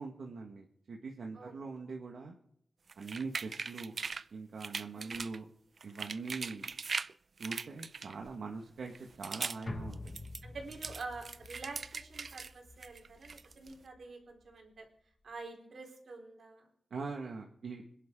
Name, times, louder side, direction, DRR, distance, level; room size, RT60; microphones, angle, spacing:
voice 1, 0.0-2.3 3.0-3.9 4.3-5.4 5.8-6.7 7.4-8.9 9.2-10.1 16.9-17.8, right 4 dB, 90° right, 1 dB, 1.8 m, -42 dB
sound 1, 2.9-4.2 4.6-5.4 5.8-7.1 7.4-8.4 8.9-9.6 9.9-12.5 12.8-13.7, right 4 dB, 55° right, 0.5 m, -40 dB
voice 2, 4.9-5.3 10.4-14.9 15.2-16.7, right 3 dB, 75° right, 2 dB, 4.1 m, -47 dB
sound 2, 9.7-14.1 14.4-14.5, left 2 dB, 40° left, 1.7 m, -47 dB
26.0 x 11.0 x 3.8 m, 0.70 s
wide cardioid pair, 145°, 0 cm